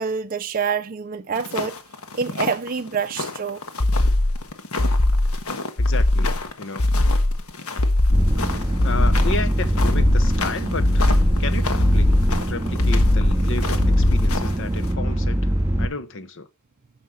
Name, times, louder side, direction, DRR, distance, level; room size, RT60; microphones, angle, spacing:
voice 1, 0.0-1.8 2.1-3.6, right 6 dB, 40° right, 0.4 m, -26 dB
sound 1, 1.3-14.9, left 3 dB, 75° left, 1.4 m, -33 dB
sound 2, 3.8-4.4 4.8-5.4 5.8-6.4 6.8-7.4 7.8-8.4 8.8-9.4 9.8-10.4 10.8-11.4 11.8-12.4 12.8-13.4 13.8-14.4, left 1 dB, 35° left, 0.6 m, -19 dB
voice 2, 5.8-6.3 6.6-6.9 8.4-12.1 12.5-15.4 15.8-16.5, left 3 dB, 55° left, 1.0 m, -32 dB
sound 3, 8.1-15.9, right 1 dB, 15° right, 2.5 m, -23 dB
9.5 x 6.5 x 6.4 m
head